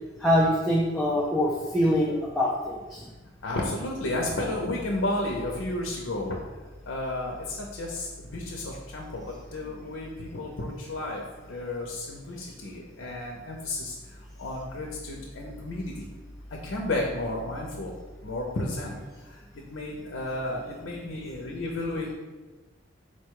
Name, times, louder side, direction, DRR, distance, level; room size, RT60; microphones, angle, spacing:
voice 1, 0.2-3.0, equal, ahead, -5 dB, 0.4 m, -24 dB
voice 2, 3.4-6.3 6.9-7.3 7.8-8.1 8.3-9.2 9.5-11.2 11.5-13.9 14.4-15.9 16.6-17.9 18.2-18.9 19.7-22.1, left 1 dB, 85° left, -1 dB, 0.6 m, -32 dB
4.3 x 2.2 x 4.6 m, 1.2 s
head